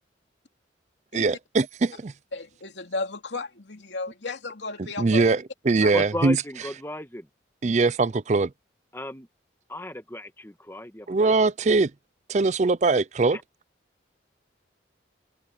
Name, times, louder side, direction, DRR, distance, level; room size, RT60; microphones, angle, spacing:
voice 1, 1.1-2.1 4.8-6.4 7.6-8.5 11.1-11.9 12.3-13.4, right 3 dB, 40° right, 0.4 m, -22 dB
voice 2, 2.3-5.3 5.8-5.9 7.6-7.7, left 3 dB, 75° left, 2.6 m, -34 dB
voice 3, 5.9-7.3 8.9-9.3 9.7-11.3 13.3-13.4, left 1 dB, 15° left, 1.7 m, -35 dB
head